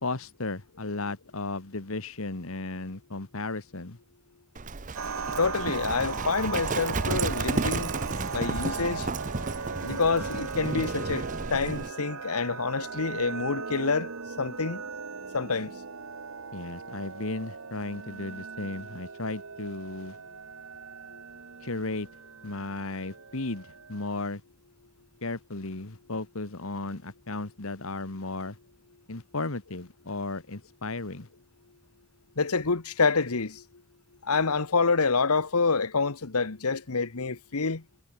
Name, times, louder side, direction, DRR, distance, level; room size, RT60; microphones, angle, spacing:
voice 1, 0.0-4.0 16.5-20.2 21.6-22.1 22.4-24.4 25.2-28.6 29.1-31.3, left 2 dB, 70° left, 1.7 m, -35 dB
Livestock farm animals working animals, 4.6-11.9, right 3 dB, 35° right, 0.8 m, -32 dB
sound 1, 4.9-24.1, right 5 dB, 65° right, 1.1 m, -38 dB
voice 2, 5.4-7.9 8.3-9.1 9.8-11.2 11.5-14.1 14.4-14.8 15.3-15.7 32.4-33.6 34.3-37.8, left 4 dB, 85° left, 1.3 m, -27 dB
head